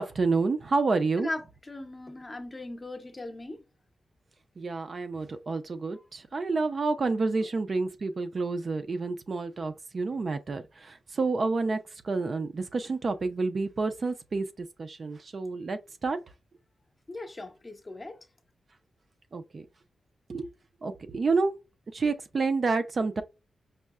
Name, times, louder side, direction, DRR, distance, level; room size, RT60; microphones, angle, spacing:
voice 1, 0.0-1.3 4.6-11.8 12.0-14.5 14.8-16.2 19.3-19.7 20.3-20.5 20.8-21.5 21.9-23.2, right 3 dB, 40° right, 0.4 m, -29 dB
voice 2, 1.2-3.6 12.8-12.9 17.1-18.3, left 2 dB, 20° left, 0.6 m, -38 dB
5.4 x 2.0 x 2.3 m
wide cardioid pair, 155°, 0 cm